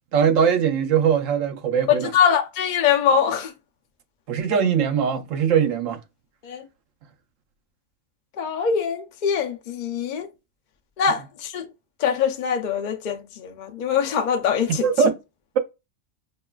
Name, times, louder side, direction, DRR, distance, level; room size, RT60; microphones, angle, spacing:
voice 1, 0.1-2.1 4.3-6.0 14.7-15.1, right 7 dB, 85° right, 1.0 m, -21 dB
voice 2, 1.9-3.5 6.4-6.7 8.4-10.3 11.0-11.7 12.0-14.9, left 7 dB, 65° left, 0.4 m, -23 dB
5.1 x 2.3 x 2.2 m
omnidirectional pair, 1.3 m